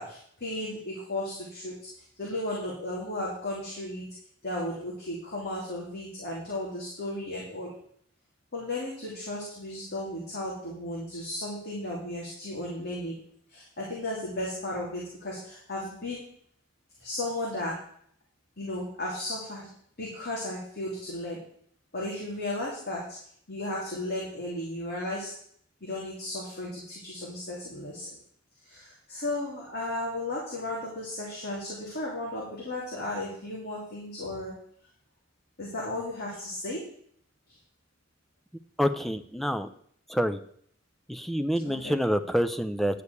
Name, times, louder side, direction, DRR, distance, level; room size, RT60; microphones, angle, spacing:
voice 1, 0.0-1.7 2.2-4.1 4.4-7.7 8.5-13.2 13.5-16.2 17.0-17.7 18.6-19.7 20.0-21.4 21.9-23.2 23.5-25.3 25.8-28.1 28.6-34.5 35.6-36.8 41.6-42.0, left 1 dB, 55° left, -4 dB, 3.0 m, -35 dB
voice 2, 38.8-39.7 40.1-40.4 41.1-43.0, equal, ahead, 9 dB, 0.5 m, -27 dB
11.0 x 5.0 x 8.3 m, 0.63 s
head